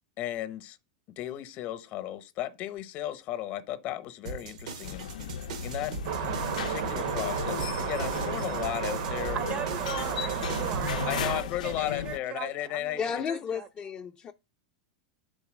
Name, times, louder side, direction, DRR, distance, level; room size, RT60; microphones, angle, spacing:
voice 1, 0.2-0.8 1.2-5.1 5.6-6.0 6.5-9.4 11.1-13.0, left 13 dB, 45° left, 0.8 m, -35 dB
sound 1, 4.3-10.9, right 4 dB, 85° right, 1.1 m, -41 dB
sound 2, 4.8-12.2, left 8 dB, 90° left, 0.5 m, -37 dB
sound 3, 6.0-11.4, right 8 dB, 70° right, 0.9 m, -32 dB
voice 2, 9.3-13.7, right 9 dB, 30° right, 0.6 m, -39 dB
voice 3, 13.0-14.3, left 7 dB, 25° left, 0.4 m, -33 dB
6.8 x 4.0 x 6.1 m
supercardioid pair, 130°, 4 cm